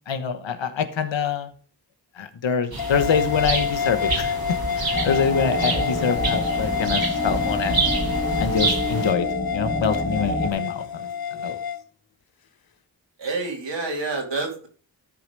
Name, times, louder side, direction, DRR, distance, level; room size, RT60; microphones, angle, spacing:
voice 1, 0.1-1.5 2.2-7.9 8.4-11.6, left 6 dB, 90° left, 9 dB, 1.2 m, -25 dB
sound 1, 2.7-9.1, right 3 dB, 55° right, 2.5 m, -28 dB
sound 2, 2.8-11.8, left 7 dB, 55° left, 0.9 m, -28 dB
sound 3, 4.9-10.5, left 1 dB, 20° left, 1.4 m, -28 dB
voice 2, 13.2-14.7, right 3 dB, 80° right, 1 dB, 3.2 m, -28 dB
13.5 x 4.9 x 5.3 m, 0.39 s
cardioid pair, 45°, 43 cm